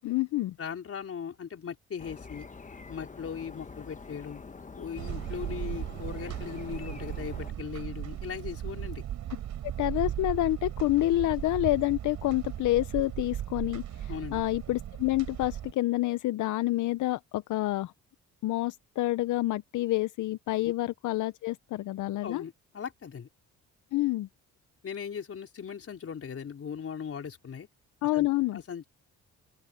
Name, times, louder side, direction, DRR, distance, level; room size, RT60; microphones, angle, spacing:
voice 1, 0.0-0.5 9.6-17.9 18.4-22.4 23.9-24.3 28.0-28.6, left 16 dB, 80° left, 0.7 m, -28 dB
voice 2, 0.6-2.5 2.9-4.4 4.8-9.0 14.1-14.4 20.6-20.7 22.2-23.3 24.8-27.7 28.1-28.3 28.5-28.8, left 7 dB, 50° left, 4.8 m, -39 dB
sound 1, 2.0-7.5, left 4 dB, 25° left, 1.5 m, -46 dB
sound 2, 5.0-15.7, right 11 dB, 75° right, 5.6 m, -37 dB
open air
cardioid pair, 90°, 30 cm